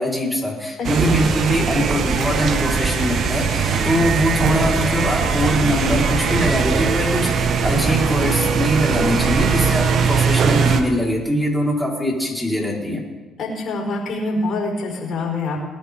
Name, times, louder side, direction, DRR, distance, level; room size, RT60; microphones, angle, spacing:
voice 1, 0.0-13.0, equal, ahead, -4 dB, 4.9 m, -22 dB
sound 1, 0.8-10.8, right 5 dB, 55° right, 1.6 m, -20 dB
voice 2, 13.4-15.6, left 2 dB, 55° left, -1 dB, 5.6 m, -25 dB
20.5 x 10.5 x 3.9 m, 1.3 s
supercardioid pair, 70°, 0 cm